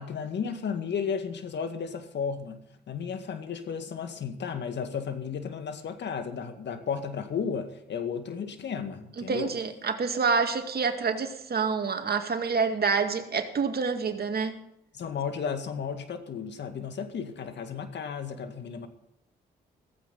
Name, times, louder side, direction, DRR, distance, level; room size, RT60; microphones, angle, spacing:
voice 1, 0.0-9.5 14.9-18.9, left 6 dB, 65° left, 7 dB, 2.0 m, -34 dB
voice 2, 9.3-14.5, right 5 dB, 55° right, 6 dB, 2.2 m, -27 dB
16.0 x 15.0 x 4.2 m, 0.79 s
hypercardioid pair, 45°, 20 cm